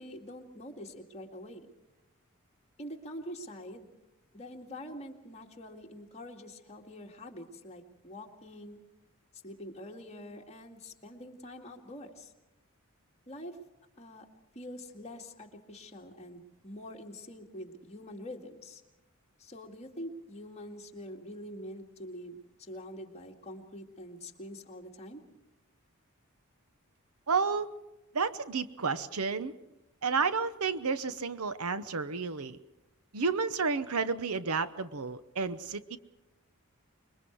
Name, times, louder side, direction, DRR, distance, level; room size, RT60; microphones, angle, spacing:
voice 1, 0.0-1.7 2.8-3.9 4.3-8.8 9.4-12.3 13.3-13.6 14.0-14.3 14.5-18.8 19.4-25.2, equal, 30° left, 1 dB, 2.2 m, -45 dB
voice 2, 27.3-27.7 28.1-29.5 30.0-32.6 33.1-36.0, right 5 dB, 85° right, 13 dB, 0.9 m, -31 dB
26.0 x 22.0 x 4.7 m, 0.97 s
head